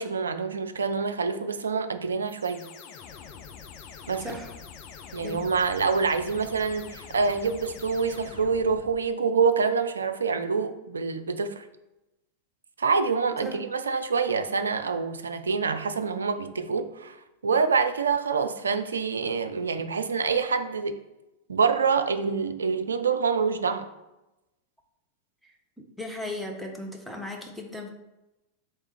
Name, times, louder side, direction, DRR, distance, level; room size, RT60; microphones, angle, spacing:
voice 1, 0.0-2.6 4.1-4.4 5.1-11.6 12.8-17.2 17.4-21.0 21.5-23.9, right 5 dB, 70° right, 9 dB, 0.3 m, -26 dB
sound 1, 2.3-9.1, left 6 dB, 40° left, 0.5 m, -45 dB
voice 2, 4.2-4.5 5.2-5.4 13.4-13.6 26.0-27.9, left 1 dB, ahead, 1 dB, 0.7 m, -36 dB
3.6 x 3.2 x 4.3 m, 0.95 s
figure-of-eight pair, 90°, 0 cm